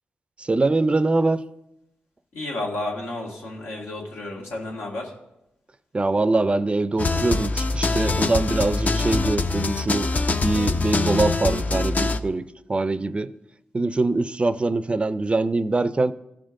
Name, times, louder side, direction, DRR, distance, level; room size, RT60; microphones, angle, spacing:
voice 1, 0.4-1.4 5.9-10.1 10.4-13.3 13.7-16.1, right 3 dB, 30° right, 0.4 m, -23 dB
voice 2, 2.3-5.1, left 2 dB, 90° left, 1.7 m, -31 dB
sound 1, 7.0-12.2, left 3 dB, 45° left, 0.5 m, -24 dB
14.5 x 5.1 x 3.6 m
cardioid pair, 60°, 4 cm